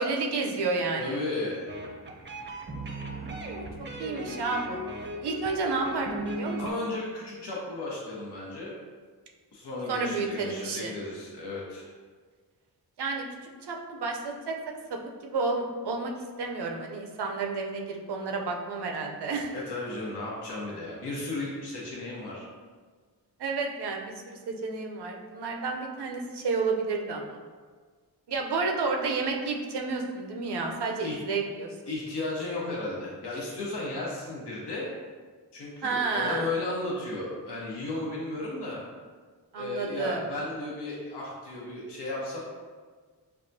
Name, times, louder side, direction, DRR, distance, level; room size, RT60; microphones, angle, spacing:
voice 1, 0.0-1.2 3.1-4.8 5.2-6.6 9.9-10.9 13.0-13.2 13.7-14.5 15.2-16.1 16.4-19.5 23.4-27.4 28.3-31.7 35.8-36.5 39.5-40.2, right 4 dB, 70° right, 2 dB, 0.6 m, -31 dB
voice 2, 1.0-1.7 6.6-8.8 9.5-11.9 19.5-22.5 31.0-31.2 31.9-34.9 35.5-38.8 39.5-42.4, left 2 dB, 70° left, -4 dB, 1.0 m, -34 dB
sound 1, 1.7-6.7, right 1 dB, 25° right, 0.6 m, -37 dB
5.4 x 2.3 x 2.6 m, 1.5 s
cardioid pair, 40°, 42 cm